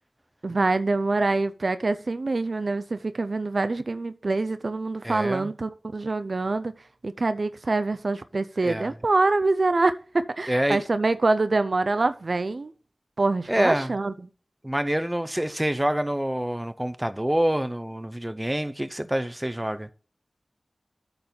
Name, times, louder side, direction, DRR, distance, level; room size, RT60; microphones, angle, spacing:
voice 1, 0.4-6.7 7.0-12.7 13.2-14.1, right 3 dB, 65° right, 0.5 m, -25 dB
voice 2, 5.0-5.5 8.6-8.9 10.5-10.8 13.5-13.9 14.6-19.9, right 1 dB, 10° right, 0.7 m, -26 dB
8.7 x 4.0 x 6.9 m
wide cardioid pair, 60°, 0 cm